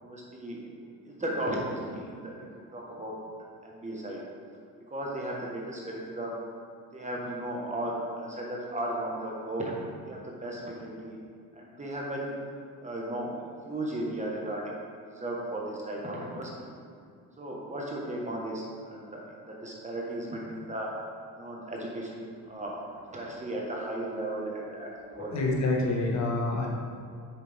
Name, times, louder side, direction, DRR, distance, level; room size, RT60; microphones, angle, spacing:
voice 1, 0.0-0.6 1.0-2.3 2.7-3.1 3.6-4.2 4.9-6.4 6.9-9.7 10.1-11.2 11.5-12.3 12.8-13.3 13.7-14.7 15.1-16.7 17.4-20.9 21.4-25.4, right 1 dB, 20° right, -3 dB, 1.4 m, -35 dB
voice 2, 25.2-26.7, left 2 dB, 45° left, -2 dB, 1.6 m, -27 dB
8.0 x 6.7 x 3.5 m, 2.3 s
cardioid pair, 115°, 39 cm